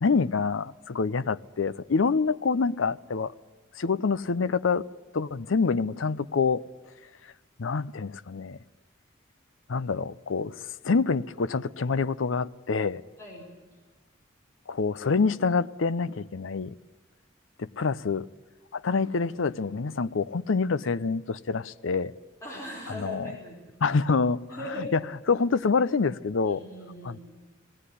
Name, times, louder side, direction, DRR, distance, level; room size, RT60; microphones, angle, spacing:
voice 1, 0.0-3.3 3.8-4.9 5.1-6.6 7.6-8.6 9.7-10.6 10.8-13.0 14.7-16.7 17.6-18.3 18.7-22.1 22.9-23.3 23.8-24.4 24.8-25.0 25.3-26.6 27.0-27.2, left 4 dB, 80° left, 0.6 m, -26 dB
voice 2, 13.2-13.5 22.4-23.6 24.5-24.9 26.4-27.2, left 1 dB, 15° left, 4.9 m, -39 dB
19.0 x 17.0 x 9.9 m
head